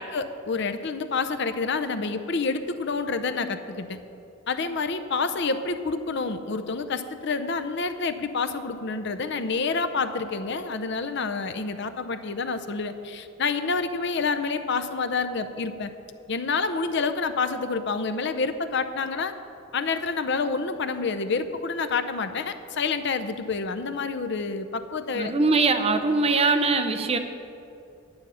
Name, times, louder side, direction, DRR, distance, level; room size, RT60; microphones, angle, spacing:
voice 1, 0.0-4.0 4.5-15.9 16.3-19.3 19.7-25.3, left 4 dB, 60° left, 10 dB, 0.6 m, -28 dB
voice 2, 25.1-27.2, right 3 dB, 30° right, 7 dB, 0.6 m, -22 dB
10.5 x 9.8 x 5.6 m, 2.6 s
head